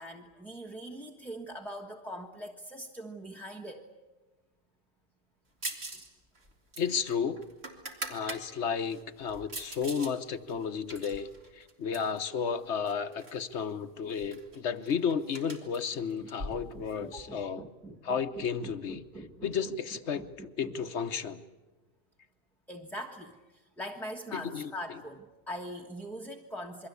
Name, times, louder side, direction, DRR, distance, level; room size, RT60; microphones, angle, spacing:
voice 1, 0.0-3.8 15.9-19.5 20.1-20.7 22.7-26.9, equal, ahead, 1 dB, 1.3 m, -43 dB
sound 1, 5.6-6.1 6.4-8.4 8.9-10.1 10.5-12.2 12.9-13.4 13.7-13.8 14.1-17.2, right 2 dB, 50° right, 2.9 m, -42 dB
voice 2, 6.8-7.5 8.1-17.7 18.0-19.0 19.4-21.4 24.3-24.7, left 6 dB, 60° left, 11 dB, 1.3 m, -33 dB
28.0 x 22.5 x 8.3 m, 1.2 s
omnidirectional pair, 1.4 m